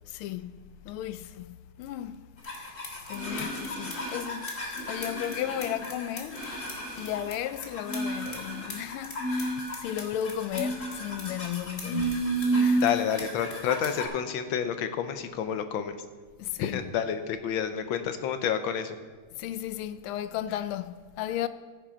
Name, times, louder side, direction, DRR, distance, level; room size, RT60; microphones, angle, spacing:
voice 1, 0.1-0.6 0.8-2.2 2.5-2.8 3.1-6.5 7.0-12.9 16.4-16.9 19.3-21.5, left 11 dB, 90° left, 1.4 m, -35 dB
sound 1, 2.4-14.1, right 1 dB, 40° left, 1.9 m, -32 dB
voice 2, 12.8-15.9 16.6-19.0, left 8 dB, 75° left, 1.5 m, -29 dB
14.0 x 7.4 x 5.1 m
omnidirectional pair, 2.3 m